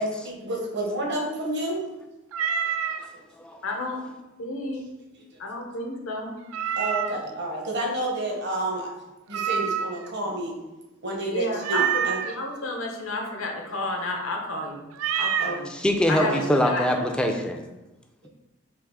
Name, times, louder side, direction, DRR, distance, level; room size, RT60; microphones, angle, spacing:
voice 1, 0.0-1.8 3.1-3.2 6.8-8.9 9.3-10.5 11.0-12.2 15.4-15.6 16.2-16.3, right 1 dB, 55° right, -1 dB, 0.9 m, -29 dB
Meow, 2.3-3.1 6.5-7.3 9.3-10.1 11.6-12.3 14.9-15.6, right 8 dB, 75° right, 0.3 m, -27 dB
voice 2, 3.6-4.1 4.4-4.9 5.4-6.3 11.3-14.9 15.1-15.7 16.1-17.1, left 2 dB, 75° left, 1 dB, 0.8 m, -31 dB
voice 3, 15.7-17.6, equal, 5° left, 3 dB, 0.3 m, -23 dB
3.5 x 2.9 x 4.7 m, 1.0 s
head